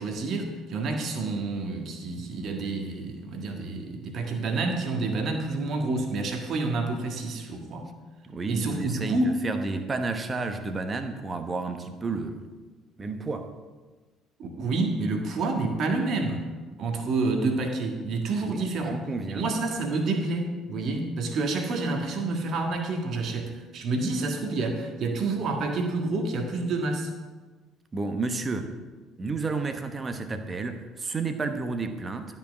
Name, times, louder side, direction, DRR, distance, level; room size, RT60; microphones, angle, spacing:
voice 1, 0.0-7.9 8.5-9.4 14.4-16.4 16.8-19.0 19.3-27.1, right 3 dB, 45° right, 4 dB, 1.6 m, -28 dB
voice 2, 8.2-12.5 13.0-13.5 18.4-19.5 27.9-28.8 29.2-32.4, right 3 dB, 25° right, 8 dB, 1.1 m, -31 dB
12.5 x 5.6 x 6.1 m, 1.3 s
figure-of-eight pair, 55°, 0 cm